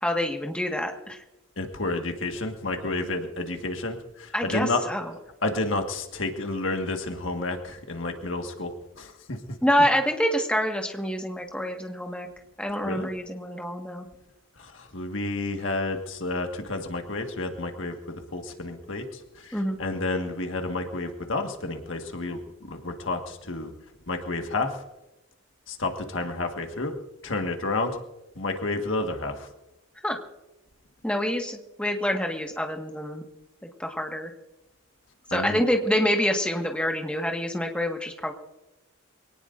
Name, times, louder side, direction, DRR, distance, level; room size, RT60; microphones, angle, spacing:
voice 1, 0.0-1.2 4.3-5.1 9.6-12.3 12.6-14.1 19.5-19.8 30.0-30.2 31.0-33.2 33.8-34.3 35.3-38.3, equal, 5° left, 2 dB, 1.6 m, -26 dB
voice 2, 1.6-4.0 4.5-4.8 5.4-8.7 9.0-9.4 12.8-13.1 14.9-19.0 19.8-23.7 24.1-24.7 25.7-26.9 27.2-28.0 28.4-29.4 35.3-35.6, left 2 dB, 75° left, 4 dB, 1.7 m, -30 dB
23.5 x 18.5 x 2.6 m, 0.96 s
head